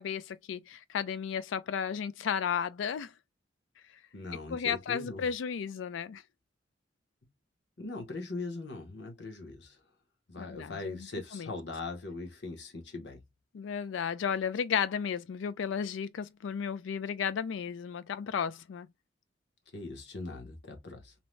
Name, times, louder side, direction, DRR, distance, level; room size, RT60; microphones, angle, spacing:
voice 1, 0.0-3.1 4.5-6.2 10.4-11.1 11.3-11.5 13.5-18.9, left 7 dB, 85° left, 0.4 m, -33 dB
voice 2, 4.1-5.3 7.8-9.8 10.3-13.2 19.7-21.1, left 3 dB, 65° left, 0.9 m, -40 dB
2.7 x 2.0 x 3.1 m
head